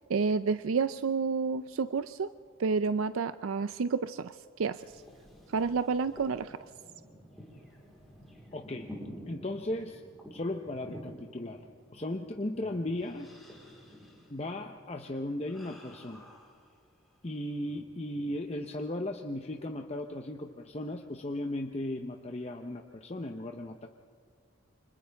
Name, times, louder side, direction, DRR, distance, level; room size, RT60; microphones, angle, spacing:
voice 1, 0.1-2.3 2.6-4.8 5.5-6.6, right 5 dB, 80° right, 12 dB, 0.5 m, -30 dB
sound 1, 4.7-17.2 17.6-18.4, equal, ahead, 4.1 m, -51 dB
voice 2, 8.5-8.9 9.3-11.6 11.9-13.3 14.3-16.3 17.2-23.9, left 1 dB, 30° left, 3 dB, 0.8 m, -36 dB
29.5 x 25.5 x 3.5 m, 2.1 s
head